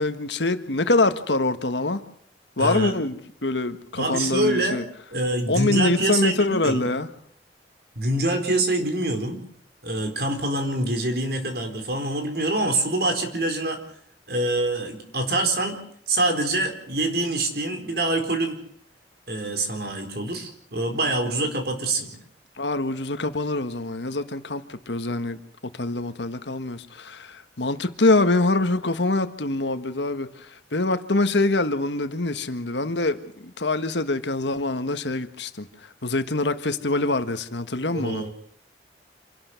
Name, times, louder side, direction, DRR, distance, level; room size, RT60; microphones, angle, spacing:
voice 1, 0.0-2.0 2.6-4.8 5.5-7.1 22.6-25.4 25.7-35.7 36.0-38.2, left 2 dB, 80° left, 1.6 m, -24 dB
voice 2, 2.6-2.9 4.0-4.8 5.1-6.8 8.0-9.4 9.8-13.8 14.3-15.8 16.1-18.6 19.3-22.2 37.9-38.3, right 2 dB, 60° right, 4.3 m, -25 dB
27.0 x 12.0 x 8.2 m
head